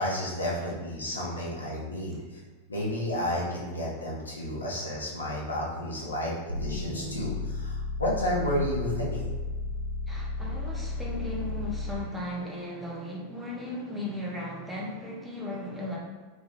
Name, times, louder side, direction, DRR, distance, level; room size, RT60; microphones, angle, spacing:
voice 1, 0.0-2.4 2.7-9.4, left 1 dB, 80° left, -4 dB, 0.6 m, -31 dB
sound 1, 6.5-12.1, left 2 dB, 90° right, 0.4 m, -33 dB
voice 2, 10.1-16.0, left 1 dB, 5° right, -4 dB, 0.6 m, -36 dB
2.8 x 2.1 x 2.6 m, 1.3 s
figure-of-eight pair, 90°, 0 cm